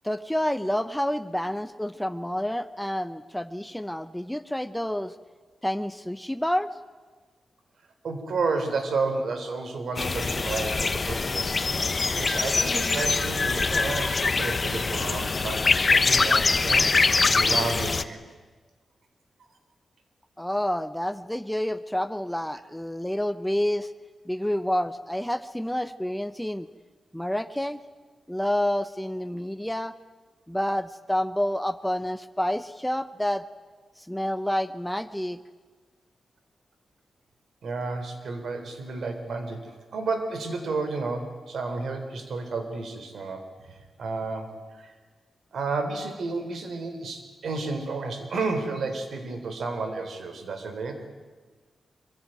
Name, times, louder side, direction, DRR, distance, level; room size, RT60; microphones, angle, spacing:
voice 1, 0.0-5.1 5.6-6.7 20.4-23.9 24.3-26.7 27.1-27.8 28.3-29.9 30.5-33.4 34.0-35.4, left 1 dB, 5° left, 12 dB, 0.8 m, -28 dB
voice 2, 8.0-16.9 17.3-18.2 37.6-44.9 45.5-51.0, right 3 dB, 75° right, 8 dB, 3.7 m, -31 dB
sound 1, 10.0-18.0, left 4 dB, 40° left, 1.1 m, -24 dB
24.5 x 22.5 x 9.2 m, 1.4 s
cardioid pair, 85°, 0 cm